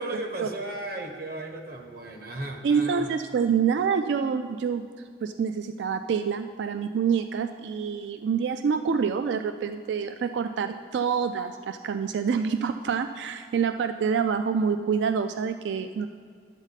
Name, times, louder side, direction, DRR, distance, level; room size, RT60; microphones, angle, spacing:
voice 1, 0.0-3.1, right 2 dB, 55° right, 3 dB, 1.0 m, -35 dB
voice 2, 2.6-4.8 5.2-16.1, right 6 dB, 80° right, 9 dB, 0.3 m, -26 dB
11.5 x 8.0 x 4.1 m, 2.1 s
head